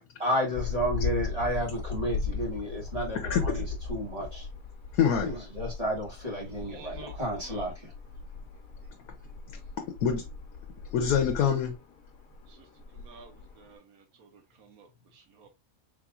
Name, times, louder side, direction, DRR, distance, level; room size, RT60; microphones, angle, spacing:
voice 1, 0.2-4.5 5.2-7.9, equal, 25° right, 1.9 m, -32 dB
sound 1, 0.5-13.7, left 4 dB, 70° left, 1.4 m, -37 dB
voice 2, 4.9-5.3 9.8-10.2 10.9-11.8, left 8 dB, 90° left, 1.2 m, -25 dB
voice 3, 6.5-7.7 12.5-12.7 12.9-15.5, right 5 dB, 90° right, 1.4 m, -53 dB
4.7 x 3.7 x 2.4 m
omnidirectional pair, 1.5 m